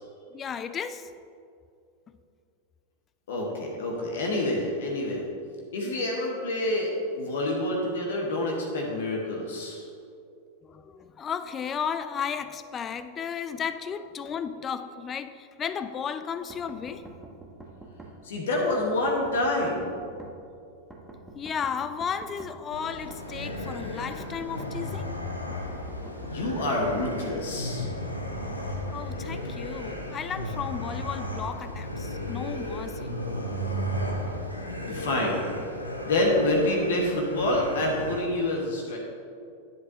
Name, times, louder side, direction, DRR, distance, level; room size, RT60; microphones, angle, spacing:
voice 1, 0.3-1.1 5.1-5.3 10.6-17.0 21.3-25.1 28.9-33.4, left 7 dB, 25° left, 0.3 m, -34 dB
voice 2, 3.3-5.2 5.7-9.8 18.2-19.9 26.3-27.9 34.9-35.4 36.0-39.0, left 1 dB, 60° left, 1.2 m, -27 dB
sound 1, 16.5-18.1 18.7-20.3 20.9-22.5 23.1-24.7 25.5-27.1, right 2 dB, 5° right, 1.2 m, -45 dB
sound 2, 22.7-38.2, equal, 85° left, 0.8 m, -34 dB
11.0 x 7.6 x 2.8 m
figure-of-eight pair, 90°, 0 cm